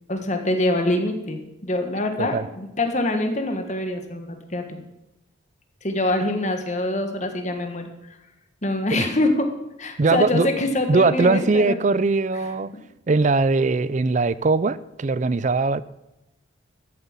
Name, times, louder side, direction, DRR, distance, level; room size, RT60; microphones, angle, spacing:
voice 1, 0.1-4.8 5.8-7.9 8.6-9.5 9.8-11.8 12.3-12.8, left 2 dB, 35° left, 5 dB, 1.5 m, -25 dB
voice 2, 10.0-10.5 10.9-12.7 13.1-15.8, right 3 dB, 35° right, 17 dB, 0.4 m, -20 dB
13.5 x 7.7 x 7.3 m, 0.95 s
head